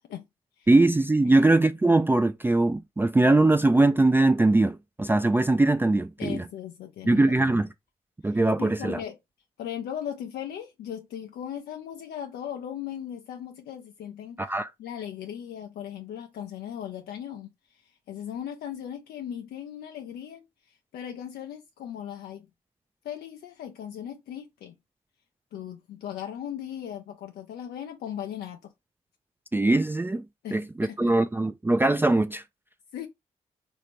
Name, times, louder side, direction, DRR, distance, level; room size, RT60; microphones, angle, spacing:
voice 1, 0.7-6.4 7.1-7.7 8.2-9.0 14.4-14.7 29.5-30.2 30.5-32.4, right 2 dB, 15° right, 0.3 m, -21 dB
voice 2, 6.2-7.6 8.2-9.2 9.6-14.4 14.8-22.5 23.0-24.7 25.5-28.7 30.4-31.2 32.9-33.1, left 10 dB, 80° left, 0.4 m, -38 dB
3.3 x 2.6 x 2.9 m
supercardioid pair, 45°, 16 cm